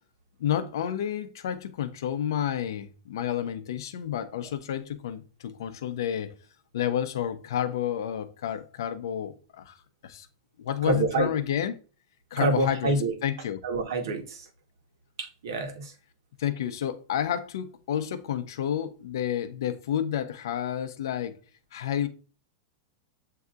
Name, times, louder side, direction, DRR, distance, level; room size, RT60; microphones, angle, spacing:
voice 1, 0.4-6.4 6.7-9.8 10.0-10.3 10.6-11.8 12.3-13.6 16.4-21.4 21.7-22.1, left 10 dB, 80° left, 0.6 m, -30 dB
voice 2, 10.8-11.3 12.4-13.1 13.6-14.5 15.2-15.9, right 2 dB, 80° right, 1.2 m, -27 dB
7.7 x 2.8 x 2.4 m
supercardioid pair, 155°, 2 cm